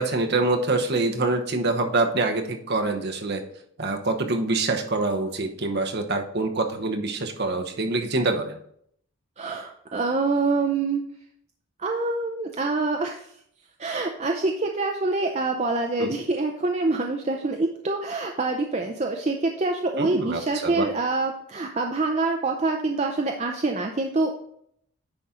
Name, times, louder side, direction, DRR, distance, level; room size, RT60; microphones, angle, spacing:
voice 1, 0.0-3.4 3.8-8.6 16.0-16.1 20.0-20.9, right 2 dB, 45° right, 4 dB, 0.9 m, -25 dB
voice 2, 9.4-11.0 11.8-13.3 13.8-24.3, right 3 dB, 30° right, 3 dB, 0.5 m, -26 dB
9.9 x 4.2 x 3.7 m, 0.68 s
head